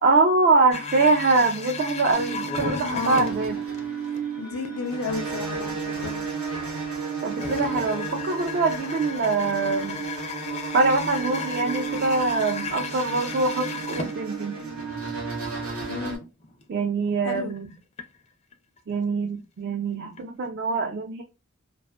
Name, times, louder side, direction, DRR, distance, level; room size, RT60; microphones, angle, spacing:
voice 1, 0.0-3.6 7.2-10.0 10.7-14.6 16.7-17.7 18.9-21.2, right 3 dB, 50° right, 0.3 m, -23 dB
sound 1, 0.7-3.8 4.1-4.2 4.6-4.7 5.5-5.6 7.4-14.7 15.0-15.1 15.8-15.9 16.4-16.6 17.1-18.0 18.5-18.9 20.2-20.3 20.5-20.6, left 4 dB, 30° left, 0.4 m, -34 dB
sound 2, 2.1-16.2, right 5 dB, 85° right, 0.9 m, -33 dB
voice 2, 2.9-3.3 4.4-6.2 15.9-16.3 17.2-17.5, left 4 dB, 90° left, 0.5 m, -32 dB
2.4 x 2.3 x 2.2 m
head